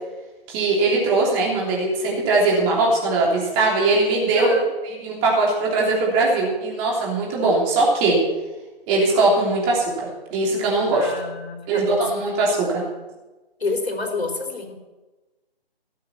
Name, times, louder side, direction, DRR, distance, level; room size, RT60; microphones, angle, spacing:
voice 1, 0.5-4.5 4.8-8.2 8.9-9.8 10.3-11.1 11.7-12.8, right 3 dB, 20° right, -3 dB, 3.1 m, -20 dB
voice 2, 4.3-4.7 10.9-12.0 13.6-14.7, left 3 dB, 80° left, 3 dB, 4.4 m, -28 dB
17.5 x 7.7 x 7.0 m, 1.2 s
figure-of-eight pair, 155°, 31 cm